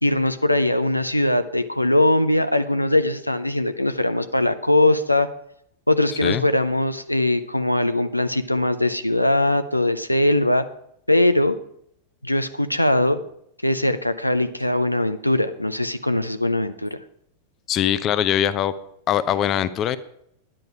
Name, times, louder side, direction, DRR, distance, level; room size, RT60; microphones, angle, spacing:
voice 1, 0.0-5.3 5.9-10.6 11.1-11.6 12.2-13.2 13.6-17.0, left 1 dB, 85° left, 10 dB, 0.6 m, -21 dB
voice 2, 17.7-18.7 19.1-20.0, left 10 dB, 30° left, 15 dB, 0.6 m, -22 dB
10.5 x 10.0 x 4.8 m, 0.73 s
figure-of-eight pair, 90°, 0 cm